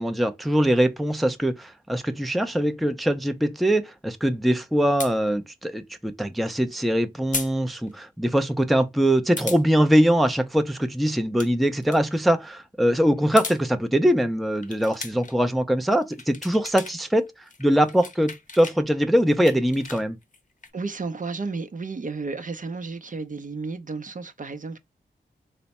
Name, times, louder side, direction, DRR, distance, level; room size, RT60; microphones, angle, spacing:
voice 1, 0.0-17.3 17.6-20.2, equal, ahead, 0.5 m, -22 dB
sound 1, 5.0-5.1 7.3-7.5 7.9-8.0 9.4-9.6 11.2-11.5 11.8-12.0 13.2-13.6 14.6-15.4 15.9-17.0 17.3-18.8 19.2-20.7, left 4 dB, 45° left, 0.7 m, -36 dB
voice 2, 20.7-24.8, right 4 dB, 45° right, 0.6 m, -32 dB
3.3 x 2.1 x 4.0 m
cardioid pair, 40°, 18 cm